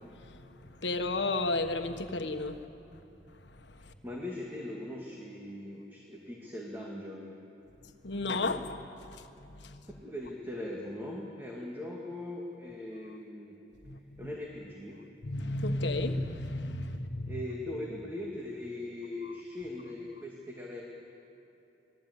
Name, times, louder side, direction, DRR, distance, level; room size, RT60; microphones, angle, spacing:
voice 1, 0.8-2.6 3.6-3.9 8.0-8.9 9.1-9.8 13.9-14.3 15.2-17.4 19.2-19.3, left 2 dB, 90° left, 7 dB, 1.4 m, -33 dB
voice 2, 4.0-7.4 9.8-13.6 14.2-15.1 17.3-20.8, left 1 dB, 15° right, -2 dB, 2.2 m, -40 dB
25.5 x 19.0 x 8.3 m, 3.0 s
head